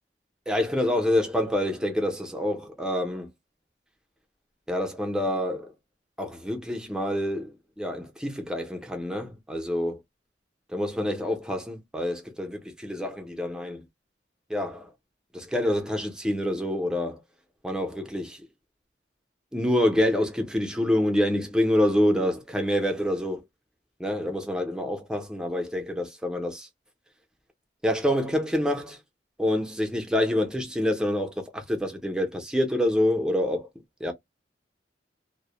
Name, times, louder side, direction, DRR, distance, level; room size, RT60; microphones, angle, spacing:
voice 1, 0.5-3.3 4.7-5.7 6.2-10.0 10.7-13.8 14.5-14.9 15.3-17.2 17.6-18.5 19.5-23.4 24.0-26.7 27.8-29.0 29.4-33.7 34.0-34.1, left 1 dB, 5° right, 0.5 m, -27 dB
2.1 x 2.1 x 2.9 m
head